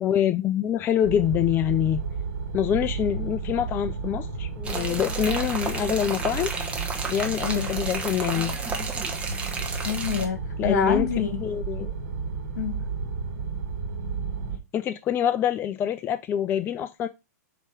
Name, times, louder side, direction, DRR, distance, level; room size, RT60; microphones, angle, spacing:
voice 1, 0.0-2.0 2.5-6.5 7.1-8.6 10.6-11.1 11.4-11.9 14.7-17.1, left 10 dB, 25° left, 0.3 m, -25 dB
sound 1, 1.0-14.6, right 5 dB, 75° right, 1.6 m, -32 dB
sound 2, 4.6-10.3, right 4 dB, 15° right, 1.1 m, -32 dB
voice 2, 7.4-7.7 9.8-11.4 12.6-12.8, left 8 dB, 65° left, 1.5 m, -27 dB
7.3 x 3.0 x 4.6 m
hypercardioid pair, 120°, 9 cm